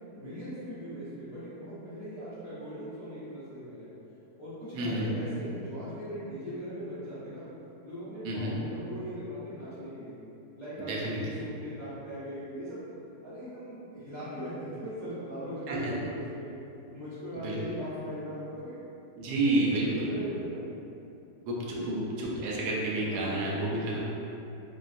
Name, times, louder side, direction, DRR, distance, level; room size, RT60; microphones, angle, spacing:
voice 1, 0.1-3.9 4.4-7.5 7.8-10.2 10.6-12.8 13.2-16.6 16.9-18.8 19.5-20.7 21.7-22.3 23.1-24.0, equal, 50° left, -14 dB, 0.4 m, -40 dB
voice 2, 4.7-5.1 8.2-8.6 10.9-11.2 15.7-15.9 17.4-17.6 19.2-20.1 21.4-24.0, right 2 dB, 75° right, -4 dB, 1.0 m, -30 dB
3.0 x 2.4 x 2.5 m, 2.8 s
omnidirectional pair, 1.9 m